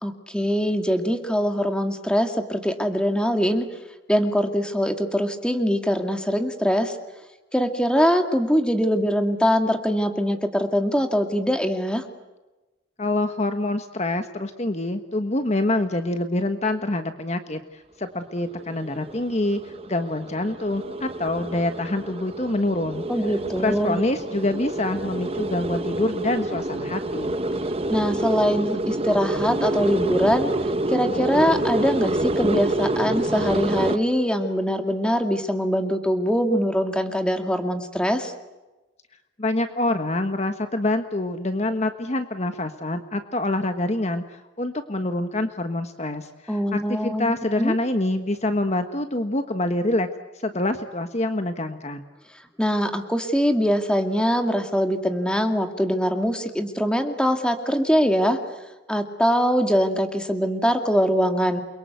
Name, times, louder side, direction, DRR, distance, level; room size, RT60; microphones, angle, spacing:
voice 1, 0.0-3.7 4.1-7.0 7.5-12.0 23.1-24.0 27.9-30.5 30.9-38.3 46.5-47.8 52.6-58.4 58.9-61.6, equal, 5° left, 6 dB, 2.2 m, -23 dB
voice 2, 13.0-23.0 23.6-27.4 39.4-50.1 50.4-52.0, left 1 dB, 35° left, 7 dB, 1.3 m, -26 dB
sound 1, 18.5-34.0, right 1 dB, 30° right, 1.2 m, -27 dB
29.0 x 23.5 x 8.2 m, 1.1 s
head